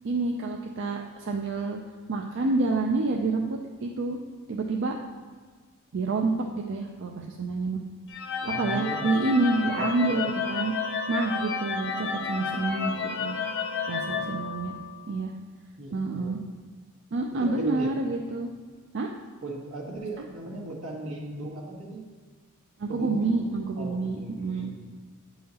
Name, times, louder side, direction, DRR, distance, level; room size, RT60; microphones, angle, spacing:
voice 1, 0.0-1.8 2.1-4.2 4.5-5.0 5.9-7.8 8.6-10.7 11.1-13.4 13.9-14.7 15.1-15.3 15.9-16.4 17.1-18.5 18.9-19.1 20.2-20.3 22.8-24.7, right 3 dB, 55° right, 2 dB, 0.5 m, -28 dB
sound 1, 8.1-15.1, left 5 dB, 55° left, 0.7 m, -31 dB
voice 2, 8.4-9.1 9.8-10.3 14.0-14.7 15.8-16.3 17.3-17.9 19.4-22.0 22.9-23.4 23.8-24.9, right 1 dB, 80° right, -2 dB, 1.5 m, -38 dB
9.4 x 5.6 x 2.9 m, 1.5 s
head